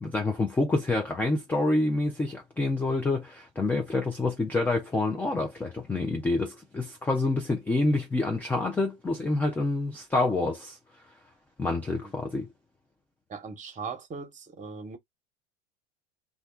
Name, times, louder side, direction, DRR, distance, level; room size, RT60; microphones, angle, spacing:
voice 1, 0.0-10.8 11.6-12.5, left 2 dB, 5° left, 0.3 m, -27 dB
voice 2, 13.3-15.0, right 5 dB, 20° right, 1.0 m, -39 dB
2.3 x 2.2 x 3.6 m
hypercardioid pair, 95°, 34 cm